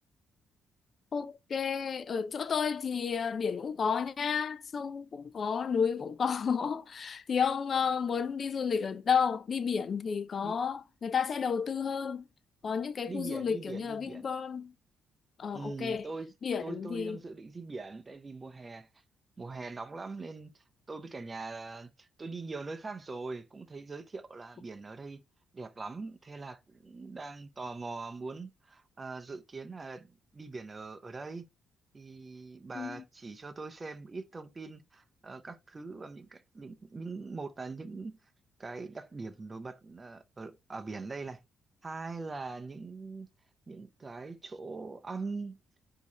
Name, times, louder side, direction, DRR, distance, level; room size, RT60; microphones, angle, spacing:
voice 1, 1.1-12.2 12.6-14.7 15.4-16.1 16.4-17.2 32.7-33.0, left 6 dB, 45° left, 0.5 m, -31 dB
voice 2, 13.1-14.3 15.5-16.3 16.6-18.9 19.4-25.2 25.5-31.4 31.9-38.1 38.6-41.4 41.8-43.3 43.7-45.6, right 3 dB, 30° right, 0.6 m, -42 dB
4.6 x 2.8 x 4.0 m
cardioid pair, 90°, 0 cm